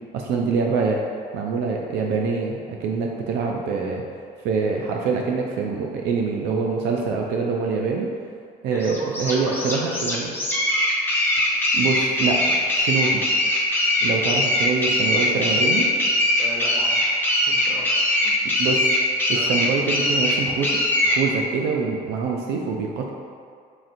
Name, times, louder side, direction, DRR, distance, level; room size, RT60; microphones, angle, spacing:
voice 1, 0.1-1.0 1.3-4.0 4.4-8.1 8.6-10.3 11.5-12.4 12.8-13.2 14.0-15.9 18.6-18.8 19.3-20.7 21.0-23.1, right 5 dB, 80° right, 0 dB, 0.4 m, -25 dB
voice 2, 8.7-9.9 16.4-17.9 18.2-18.4 19.3-19.5, equal, 20° right, -6 dB, 1.2 m, -36 dB
sound 1, 8.8-21.2, left 1 dB, 10° left, 0.7 m, -21 dB
5.8 x 2.5 x 2.5 m, 2.2 s
cardioid pair, 110°, 17 cm